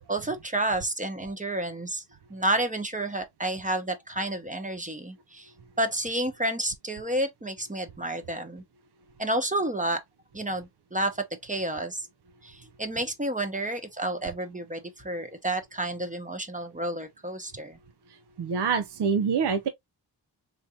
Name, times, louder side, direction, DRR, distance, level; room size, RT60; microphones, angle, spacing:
voice 1, 0.0-2.0 2.3-5.5 5.8-8.6 9.2-10.0 10.3-12.1 12.4-17.8, right 1 dB, 15° right, 0.9 m, -30 dB
voice 2, 18.4-19.7, right 6 dB, 65° right, 0.5 m, -25 dB
3.7 x 2.6 x 2.7 m
wide cardioid pair, 60°, 44 cm